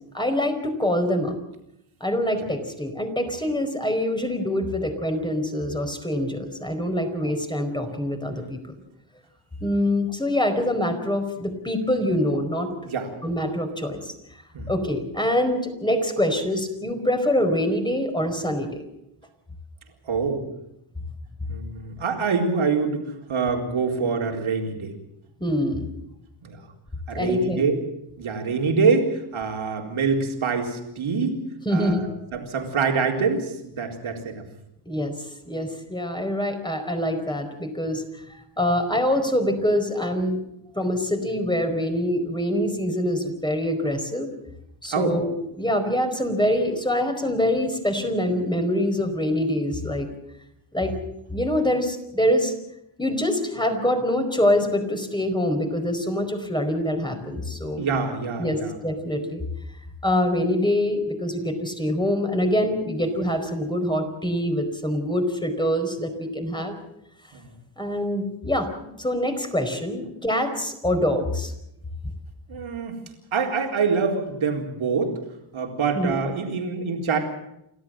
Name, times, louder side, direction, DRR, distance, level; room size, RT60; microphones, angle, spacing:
voice 1, 0.1-1.3 2.0-8.7 9.6-12.7 13.2-14.1 14.7-18.8 25.4-25.9 27.1-27.6 31.6-32.0 34.9-35.1 35.4-38.0 38.6-40.4 40.8-44.3 44.8-50.1 50.7-51.0 51.3-52.6 53.0-57.8 58.4-58.6 58.8-59.4 60.0-66.8 67.8-68.7 69.0-71.5 75.9-76.1, left 1 dB, 10° left, 5 dB, 4.8 m, -25 dB
voice 2, 20.1-20.4 21.5-24.9 26.4-26.7 27.1-27.7 28.2-31.4 31.7-34.4 44.9-45.2 50.8-50.9 57.8-58.8 67.3-67.5 72.5-73.0 73.3-75.1 75.5-77.2, right 5 dB, 75° right, 2 dB, 4.1 m, -25 dB
29.0 x 13.0 x 7.7 m, 0.83 s
cardioid pair, 85°, 49 cm